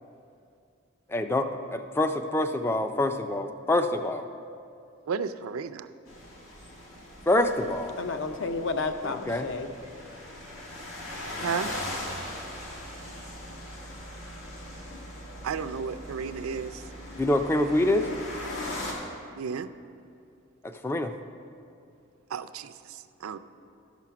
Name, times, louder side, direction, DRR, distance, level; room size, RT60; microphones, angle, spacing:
voice 1, 1.1-4.3 7.3-8.0 9.0-9.5 17.2-18.1 20.6-21.1, left 1 dB, 10° left, 8 dB, 0.3 m, -26 dB
voice 2, 5.1-5.9 11.4-11.7 15.4-16.8 19.4-19.7 22.3-23.4, right 6 dB, 90° right, 12 dB, 0.4 m, -33 dB
sound 1, 6.1-18.9, left 1 dB, 80° left, 1.9 m, -40 dB
voice 3, 8.0-9.7 17.8-18.2, left 3 dB, 60° left, 7 dB, 0.6 m, -32 dB
12.0 x 6.1 x 5.8 m, 2.5 s
head